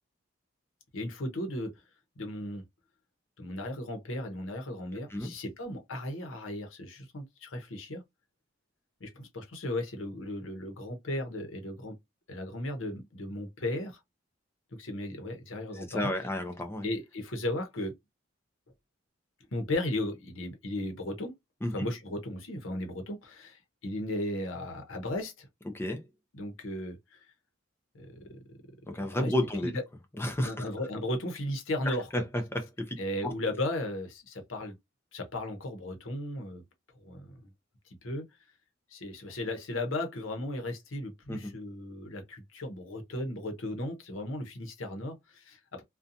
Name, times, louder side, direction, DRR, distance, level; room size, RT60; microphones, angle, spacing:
voice 1, 0.9-1.7 2.2-2.6 3.4-8.0 9.0-12.0 12.3-14.0 14.8-16.3 16.8-17.9 19.5-21.3 21.7-25.5 26.3-27.2 27.9-28.4 29.0-29.3 29.6-29.8 30.4-32.3 33.0-34.8 35.1-36.6 37.0-37.3 38.0-38.2 38.9-45.8, left 1 dB, 80° left, 0.8 m, -36 dB
voice 2, 15.9-16.9 21.6-21.7 25.7-26.0 28.9-29.7 30.2-30.6 31.9-32.0 32.5-33.3 41.3-41.5, left 1 dB, 10° left, 0.4 m, -31 dB
2.6 x 2.2 x 2.6 m
head